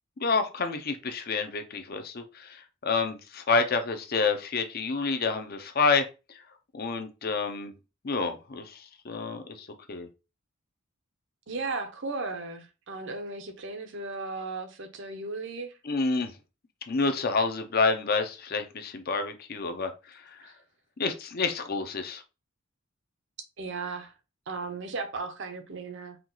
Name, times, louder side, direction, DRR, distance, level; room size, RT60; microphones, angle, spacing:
voice 1, 0.2-6.4 6.7-7.7 8.0-10.1 15.8-16.3 16.9-20.5 21.0-22.2, left 4 dB, 45° left, 0.6 m, -29 dB
voice 2, 11.5-15.7 20.4-20.5 23.6-24.1 24.5-26.2, right 3 dB, 55° right, 0.8 m, -36 dB
4.5 x 2.4 x 3.9 m
head